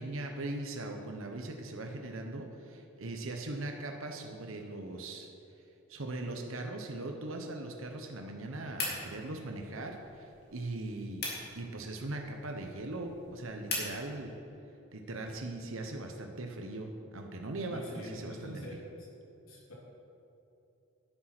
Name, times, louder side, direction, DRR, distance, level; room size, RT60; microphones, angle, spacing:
voice 1, 0.0-5.3 5.9-11.3 11.5-14.3 14.9-18.8, right 2 dB, 80° right, 3 dB, 1.0 m, -40 dB
sound 1, 8.7-14.0, left 2 dB, 50° left, 3.0 m, -42 dB
voice 2, 17.7-18.8 19.4-19.7, equal, 90° left, -3 dB, 3.1 m, -45 dB
10.5 x 9.9 x 6.1 m, 2.9 s
head